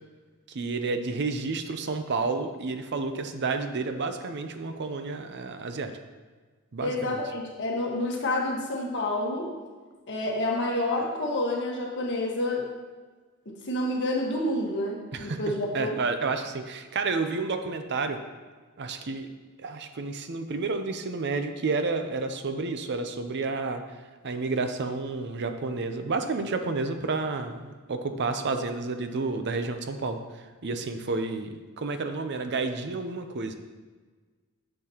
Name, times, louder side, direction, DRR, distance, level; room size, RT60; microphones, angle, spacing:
voice 1, 0.5-5.9 6.7-7.2 15.1-15.4 15.7-18.2 18.8-19.3 19.6-23.8 24.2-30.2 30.6-33.5, right 3 dB, 50° right, 7 dB, 0.6 m, -30 dB
voice 2, 6.8-9.5 10.1-12.7 13.4-15.9, left 1 dB, 55° left, -1 dB, 1.5 m, -29 dB
10.0 x 6.7 x 2.9 m, 1.4 s
head